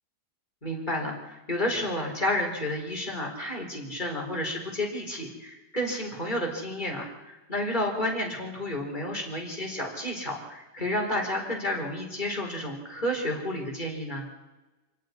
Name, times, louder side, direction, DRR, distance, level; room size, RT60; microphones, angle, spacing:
voice 1, 0.6-14.3, left 1 dB, 25° left, 0 dB, 4.7 m, -31 dB
28.0 x 9.3 x 10.0 m, 1.1 s
omnidirectional pair, 1.8 m